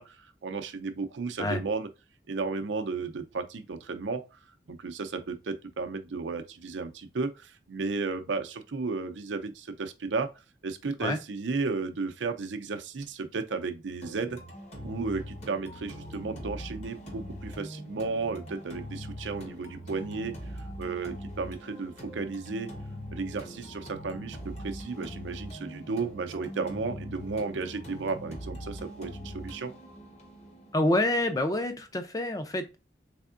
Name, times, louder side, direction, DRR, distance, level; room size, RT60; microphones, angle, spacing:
voice 1, 0.0-1.9 2.3-4.4 4.7-10.3 10.6-14.4 14.8-22.7 23.1-29.7, right 4 dB, 85° right, 0.5 m, -34 dB
sound 1, 14.0-32.0, equal, 35° left, 0.9 m, -42 dB
voice 2, 30.7-32.8, left 1 dB, 20° left, 0.4 m, -27 dB
3.5 x 3.4 x 2.4 m
head